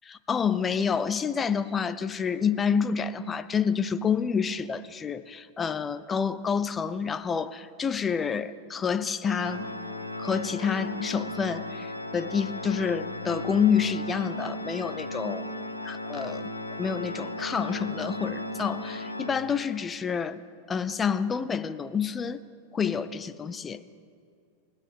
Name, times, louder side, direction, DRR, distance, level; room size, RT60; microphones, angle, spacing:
voice 1, 0.1-9.7 10.2-15.5 15.9-16.5 16.8-20.4 20.7-22.4 22.7-23.8, left 6 dB, 20° left, 14 dB, 0.6 m, -28 dB
Organ, 9.2-19.9, left 1 dB, 80° left, 0.9 m, -36 dB
27.5 x 15.0 x 3.4 m, 2.3 s
figure-of-eight pair, 90°, 0 cm